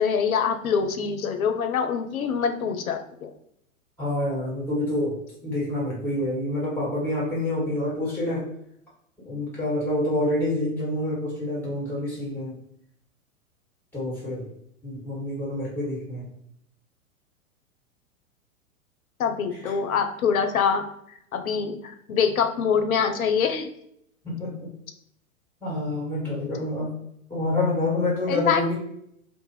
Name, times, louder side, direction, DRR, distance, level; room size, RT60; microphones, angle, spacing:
voice 1, 0.0-3.3 19.2-20.9 21.3-23.7 28.3-28.7, left 6 dB, 80° left, 7 dB, 0.5 m, -24 dB
voice 2, 4.0-8.4 9.3-12.6 13.9-14.5 14.8-16.3 24.2-24.7 25.6-26.9 27.3-28.7, left 1 dB, 5° left, -7 dB, 1.4 m, -27 dB
2.5 x 2.0 x 3.1 m, 0.73 s
figure-of-eight pair, 105°, 42 cm